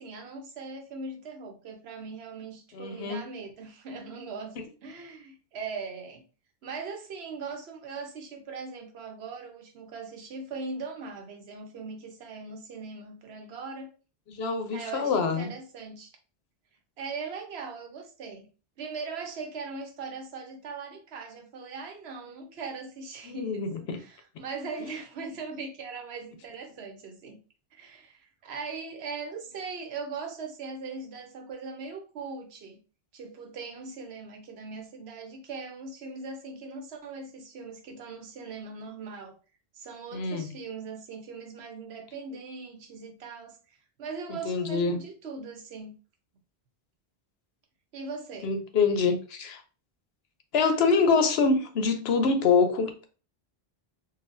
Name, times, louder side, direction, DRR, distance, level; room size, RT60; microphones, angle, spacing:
voice 1, 0.0-4.5 4.8-6.3 6.6-13.9 14.7-16.1 17.0-18.5 18.8-27.4 27.7-32.8 33.1-39.3 39.7-45.9 47.9-48.5, right 4 dB, 80° right, 1.0 m, -40 dB
voice 2, 2.7-3.2 14.3-15.5 23.2-24.0 40.1-40.5 44.4-45.0 48.4-49.6 50.5-53.1, left 4 dB, 80° left, 0.9 m, -25 dB
4.1 x 2.3 x 2.5 m
omnidirectional pair, 1.1 m